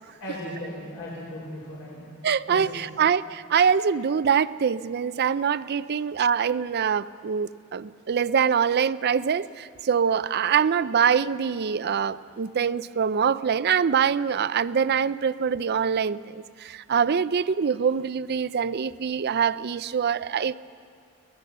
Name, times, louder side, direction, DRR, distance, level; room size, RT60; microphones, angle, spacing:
voice 1, 0.2-2.1 2.5-3.0, left 1 dB, 65° left, -5 dB, 4.5 m, -37 dB
voice 2, 2.2-20.6, right 7 dB, 50° right, 16 dB, 0.4 m, -24 dB
24.5 x 18.0 x 6.7 m, 2.2 s
head